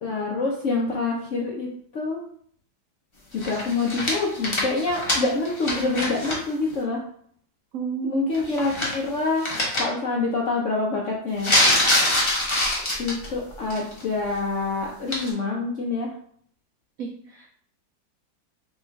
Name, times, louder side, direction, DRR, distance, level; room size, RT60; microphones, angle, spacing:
voice 1, 0.0-2.2 3.3-7.0 8.0-9.5 9.8-11.5 13.0-16.1, left 3 dB, 70° left, -2 dB, 0.7 m, -26 dB
sound 1, 3.4-6.4 6.7-6.8 8.3-9.1 9.4-9.8 11.4-13.3 13.7-14.0 15.1-15.3, left 1 dB, 30° left, 0.6 m, -24 dB
voice 2, 7.7-8.3 17.0-17.5, right 6 dB, 90° right, 2 dB, 0.7 m, -32 dB
4.2 x 3.2 x 3.5 m, 0.62 s
omnidirectional pair, 2.1 m